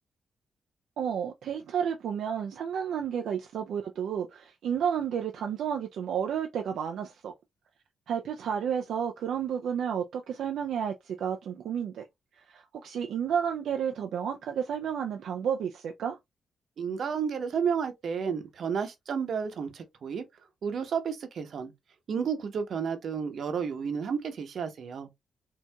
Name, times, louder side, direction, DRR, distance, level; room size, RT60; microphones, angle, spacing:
voice 1, 1.0-7.3 8.1-12.0 12.4-16.2, right 8 dB, 80° right, 0.4 m, -31 dB
voice 2, 16.8-20.2 20.6-21.7 22.1-25.1, right 6 dB, 65° right, 0.9 m, -31 dB
4.5 x 2.7 x 2.2 m
cardioid pair, 85°, 0 cm